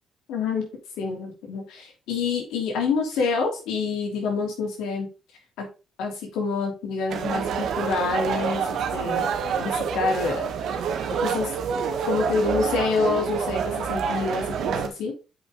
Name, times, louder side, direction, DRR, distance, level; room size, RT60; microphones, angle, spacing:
voice 1, 0.3-0.7 1.0-5.1 5.6-5.7 6.0-9.3 9.6-10.5 11.0-11.5 12.1-15.1, left 4 dB, 90° left, 1 dB, 3.2 m, -27 dB
sound 1, 7.1-14.9, right 6 dB, 75° right, 1.4 m, -27 dB
7.7 x 5.5 x 3.9 m, 0.31 s
cardioid pair, 90°, 0 cm